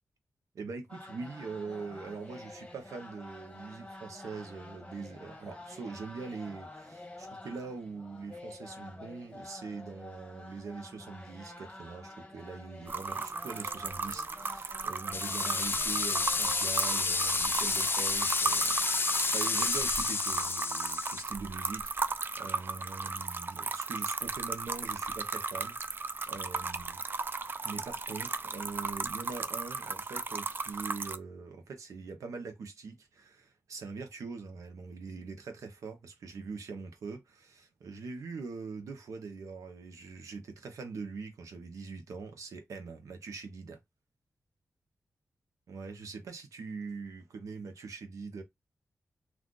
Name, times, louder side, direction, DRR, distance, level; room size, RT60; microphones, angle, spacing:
voice 1, 0.5-27.0 27.6-43.8 45.7-48.4, right 4 dB, 85° right, 0.7 m, -43 dB
sound 1, 0.9-20.5, left 2 dB, 20° left, 0.9 m, -50 dB
sound 2, 12.9-31.2, right 3 dB, 40° right, 0.4 m, -36 dB
sound 3, 15.1-21.2, left 4 dB, 45° left, 0.4 m, -30 dB
2.5 x 2.4 x 3.6 m
cardioid pair, 55°, 5 cm